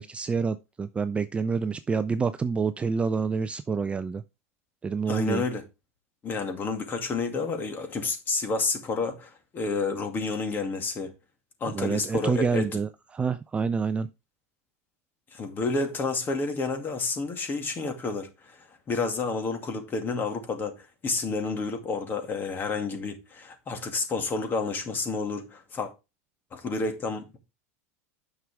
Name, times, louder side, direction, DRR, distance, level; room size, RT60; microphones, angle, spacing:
voice 1, 0.0-4.2 4.8-5.4 11.7-14.1, right 5 dB, 15° right, 0.4 m, -27 dB
voice 2, 5.1-5.6 6.2-11.1 11.6-12.8 15.3-25.9 26.5-27.4, left 4 dB, 25° left, 2.2 m, -30 dB
9.5 x 6.2 x 3.5 m
supercardioid pair, 125°, 8 cm